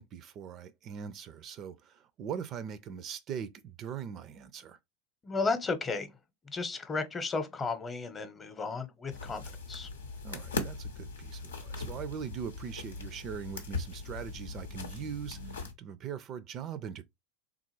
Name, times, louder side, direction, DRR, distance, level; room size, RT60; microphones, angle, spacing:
voice 1, 0.0-4.8 10.2-17.0, right 8 dB, 40° right, 0.4 m, -41 dB
voice 2, 5.2-6.1 6.4-9.9, left 4 dB, 25° left, 0.8 m, -34 dB
sound 1, 9.1-15.7, left 3 dB, 85° left, 0.7 m, -40 dB
3.5 x 2.4 x 3.1 m
hypercardioid pair, 85°, 0 cm